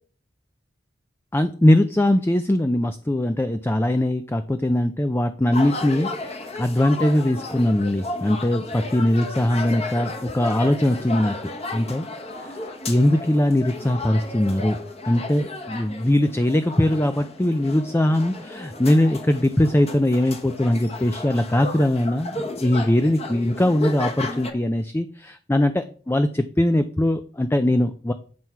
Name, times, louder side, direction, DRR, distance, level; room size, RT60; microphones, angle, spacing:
voice 1, 1.3-12.1 12.9-14.8 15.0-28.1, left 1 dB, 15° left, 8 dB, 0.4 m, -21 dB
sound 1, 5.5-24.5, left 2 dB, 35° left, 1.3 m, -34 dB
9.6 x 5.8 x 4.6 m, 0.43 s
head